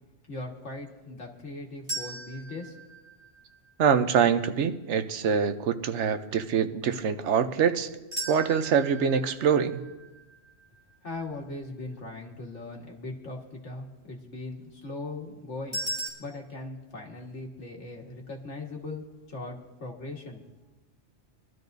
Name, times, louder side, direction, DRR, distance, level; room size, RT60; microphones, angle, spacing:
voice 1, 0.3-2.8 11.0-15.8 16.2-20.4, left 2 dB, 85° left, 0 dB, 2.0 m, -39 dB
sound 1, 1.9-4.0 8.1-11.2 15.7-16.1, right 2 dB, 30° right, 3.7 m, -38 dB
voice 2, 3.8-7.9 8.3-9.8, right 7 dB, 80° right, 9 dB, 1.0 m, -24 dB
24.5 x 12.5 x 2.7 m, 1.1 s
omnidirectional pair, 1.2 m